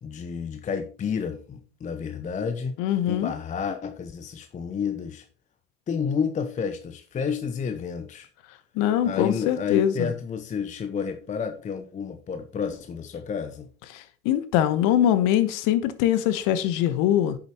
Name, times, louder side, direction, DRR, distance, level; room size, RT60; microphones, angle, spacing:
voice 1, 0.0-2.8 3.1-5.2 5.9-8.3 9.0-13.7, left 6 dB, 15° left, 0.7 m, -30 dB
voice 2, 2.8-3.3 8.8-10.1 13.9-17.4, left 11 dB, 45° left, 1.2 m, -23 dB
9.6 x 7.0 x 3.0 m
hypercardioid pair, 100°, 44 cm